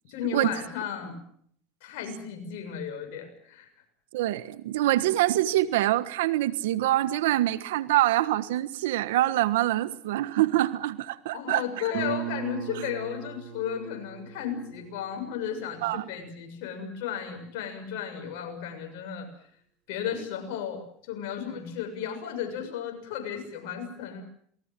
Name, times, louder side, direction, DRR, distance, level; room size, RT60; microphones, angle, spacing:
voice 1, 0.1-1.2 1.8-3.7 11.3-19.3 19.9-24.2, left 8 dB, 70° left, 4 dB, 6.8 m, -34 dB
voice 2, 4.1-11.8 12.7-12.8 15.8-16.0, right 15 dB, 85° right, 15 dB, 1.4 m, -25 dB
Guitar, 11.9-17.4, right 14 dB, 65° right, 2.4 m, -39 dB
28.0 x 19.5 x 7.6 m, 0.64 s
supercardioid pair, 110°, 0 cm